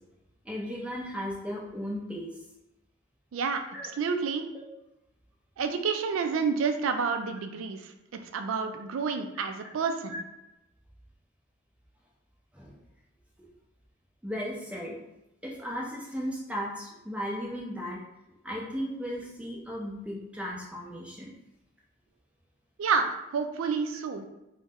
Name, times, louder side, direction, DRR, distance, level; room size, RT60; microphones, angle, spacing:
voice 1, 0.4-2.3 3.7-3.9 4.5-4.6 12.5-12.7 13.4-13.5 14.2-15.0 15.4-18.0 18.4-21.3, equal, 5° right, -3 dB, 0.5 m, -36 dB
voice 2, 3.3-3.6 4.0-4.4 5.6-7.9 8.2-10.2 22.8-24.2, right 5 dB, 70° right, 7 dB, 0.3 m, -29 dB
3.0 x 2.1 x 3.5 m, 0.92 s
head